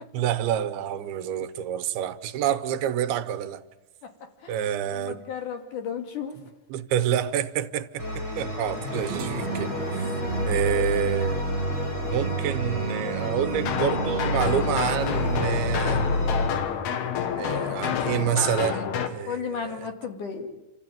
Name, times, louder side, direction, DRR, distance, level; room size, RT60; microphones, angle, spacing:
voice 1, 0.1-3.6 4.5-5.2 6.7-10.1 10.5-11.4 12.0-16.0 17.4-19.9, right 10 dB, 85° right, 2.9 m, -28 dB
voice 2, 4.4-6.4 9.6-10.0 19.3-20.5, left 6 dB, 55° left, 3.6 m, -34 dB
sound 1, 8.0-16.5, equal, 40° left, 7.9 m, -28 dB
sound 2, 8.9-13.6, right 8 dB, 60° right, 2.3 m, -42 dB
sound 3, 13.5-19.1, left 8 dB, 90° left, 3.5 m, -28 dB
28.0 x 13.5 x 9.1 m
omnidirectional pair, 4.4 m